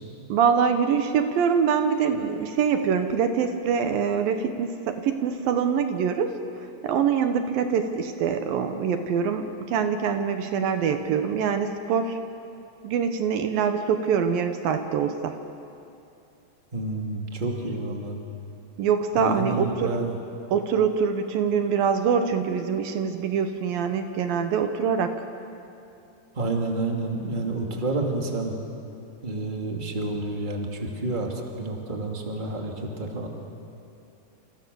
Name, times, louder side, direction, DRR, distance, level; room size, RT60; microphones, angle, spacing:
voice 1, 0.3-6.3 6.8-12.2 12.8-15.4 18.8-20.0 20.5-25.3, right 7 dB, 75° right, 7 dB, 2.8 m, -24 dB
voice 2, 16.7-18.2 19.1-20.2 26.3-28.5 29.2-33.3, right 2 dB, 15° right, 1 dB, 2.3 m, -29 dB
28.5 x 28.0 x 7.0 m, 2.7 s
omnidirectional pair, 4.3 m